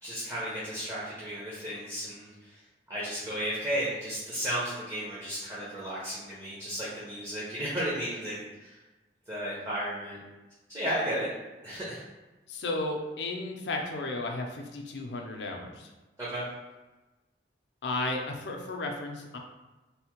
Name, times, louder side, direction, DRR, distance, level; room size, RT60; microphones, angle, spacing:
voice 1, 0.0-2.6 2.9-8.8 9.3-10.2 10.7-11.3 11.6-12.0 16.2-16.5, equal, 15° right, -9 dB, 0.7 m, -34 dB
voice 2, 12.5-15.7 17.8-19.4, left 2 dB, 65° left, 2 dB, 0.5 m, -33 dB
3.3 x 2.1 x 2.9 m, 1.1 s
head